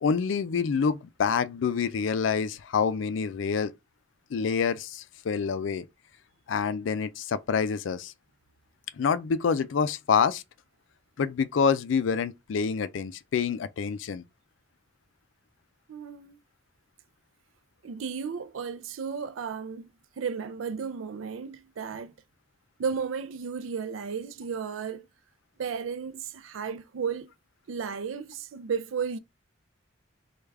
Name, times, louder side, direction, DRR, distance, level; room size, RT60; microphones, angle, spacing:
voice 1, 0.0-3.7 4.3-5.9 6.5-8.1 8.9-10.4 11.2-14.2, left 6 dB, 70° left, 0.4 m, -27 dB
voice 2, 15.9-16.4 17.8-19.9 20.2-22.1 22.8-25.1 25.6-27.3 27.7-29.2, right 6 dB, 90° right, 0.4 m, -34 dB
3.3 x 2.3 x 3.4 m
head